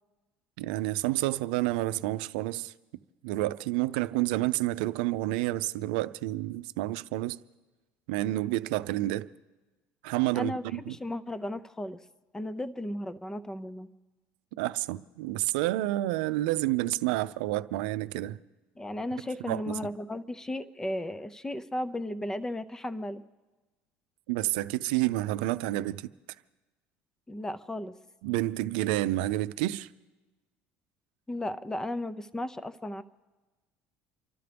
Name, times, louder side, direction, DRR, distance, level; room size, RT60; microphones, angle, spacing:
voice 1, 0.6-2.7 3.2-7.4 8.1-9.3 10.0-11.0 14.6-18.4 19.5-19.8 24.3-26.1 28.2-29.9, right 16 dB, 90° right, 0.5 m, -29 dB
voice 2, 10.3-12.0 12.3-13.9 18.8-23.2 27.3-27.9 31.3-33.0, left 1 dB, 10° left, 0.6 m, -35 dB
29.5 x 12.5 x 3.4 m
supercardioid pair, 115°, 5 cm